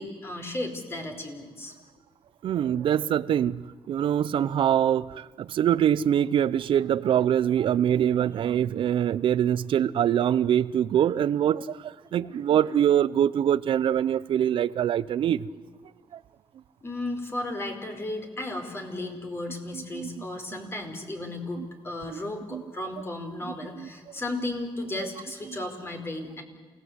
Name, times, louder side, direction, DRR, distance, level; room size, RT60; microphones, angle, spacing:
voice 1, 0.0-1.7 16.8-26.4, left 2 dB, 25° left, 4 dB, 4.8 m, -34 dB
voice 2, 2.4-3.6 3.9-15.5 16.1-16.2 19.7-20.2 20.5-20.7 21.6-21.7 22.1-22.2 22.5-22.6 23.8-23.9, right 10 dB, 65° right, 18 dB, 0.8 m, -24 dB
29.0 x 18.0 x 8.2 m, 1.4 s
cardioid pair, 110°, 9 cm